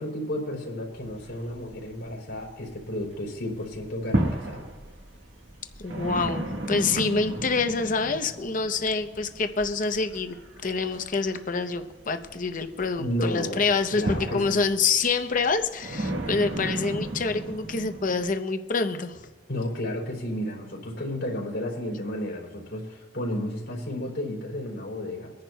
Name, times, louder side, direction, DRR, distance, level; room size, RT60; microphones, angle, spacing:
voice 1, 0.0-4.7 13.0-14.6 19.5-25.3, left 1 dB, 80° left, -2 dB, 3.4 m, -32 dB
sound 1, 0.9-3.1 3.4-18.3, right 1 dB, 85° right, 1.6 m, -34 dB
voice 2, 5.8-10.4 10.6-19.2, left 4 dB, 50° left, 7 dB, 0.7 m, -26 dB
24.5 x 10.5 x 2.3 m, 1.3 s
head